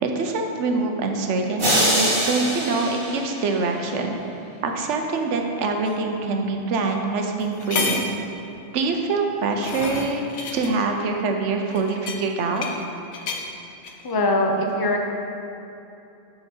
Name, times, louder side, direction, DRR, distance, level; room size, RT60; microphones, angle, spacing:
voice 1, 0.0-4.2 4.6-8.1 8.7-10.2 10.5-12.7, right 3 dB, 80° right, 3 dB, 1.0 m, -24 dB
sound 1, 1.6-3.9, equal, 65° right, 2.1 m, -24 dB
sound 2, 5.9-6.0 6.9-7.0 7.4-8.2 9.2-10.7 11.7-12.8 13.1-13.4 13.8-14.1, left 4 dB, 70° left, 0.9 m, -30 dB
voice 2, 14.0-15.0, left 1 dB, 25° left, 1 dB, 0.5 m, -22 dB
6.6 x 5.9 x 4.4 m, 2.9 s
omnidirectional pair, 1.2 m